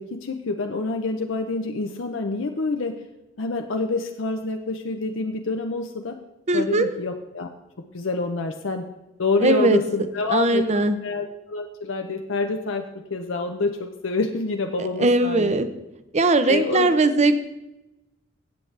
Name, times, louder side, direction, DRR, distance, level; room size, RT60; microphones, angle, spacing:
voice 1, 0.0-3.0 3.4-6.2 6.5-7.5 7.9-8.9 9.2-15.5 16.5-16.9, left 3 dB, 80° left, 4 dB, 0.7 m, -27 dB
voice 2, 6.5-6.9 9.4-9.8 10.3-11.0 15.0-15.7 16.1-17.4, right 2 dB, 35° right, 11 dB, 0.7 m, -19 dB
16.0 x 8.0 x 3.3 m, 0.97 s
head